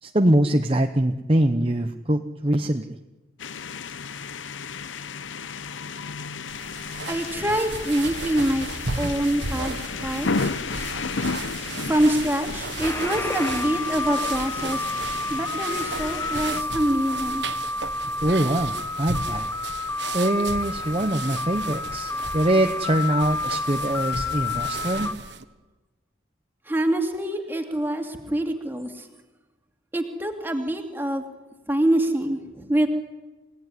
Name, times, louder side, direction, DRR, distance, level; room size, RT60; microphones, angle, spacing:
voice 1, 0.0-3.0 18.2-19.5 20.1-25.1, right 1 dB, 30° right, 6 dB, 0.9 m, -23 dB
sound 1, 3.4-16.6, left 5 dB, 85° left, 0.8 m, -33 dB
sound 2, 6.5-25.4, right 4 dB, 65° right, 1.5 m, -35 dB
voice 2, 7.1-9.8 10.0-10.3 11.8-14.8 15.3-17.5 26.7-29.1 29.9-31.2 31.7-32.9, right 1 dB, 10° right, 4 dB, 2.5 m, -25 dB
sound 3, 12.8-25.1, left 3 dB, 15° left, 1.2 m, -30 dB
30.0 x 17.5 x 9.9 m, 1.2 s
head